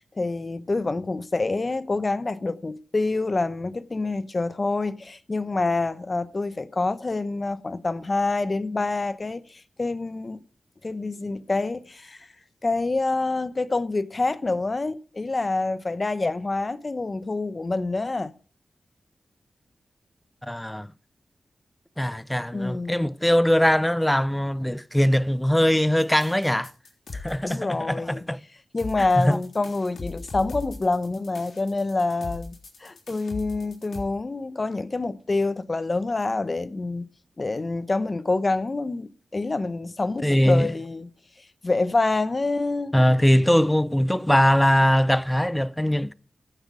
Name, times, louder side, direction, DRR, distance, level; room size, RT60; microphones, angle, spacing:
voice 1, 0.2-10.4 10.8-12.3 12.6-18.3 22.5-23.0 27.4-28.2 28.7-37.1 37.4-41.1 41.6-42.9, left 3 dB, 40° left, 0.8 m, -27 dB
voice 2, 20.4-20.9 22.0-26.7 27.1-28.4 29.0-29.4 40.2-40.7 42.9-46.1, equal, 10° left, 0.5 m, -21 dB
sound 1, 26.0-27.6 28.8-34.0, left 3 dB, 80° left, 3.5 m, -39 dB
14.5 x 7.5 x 5.0 m
cardioid pair, 65°, 0 cm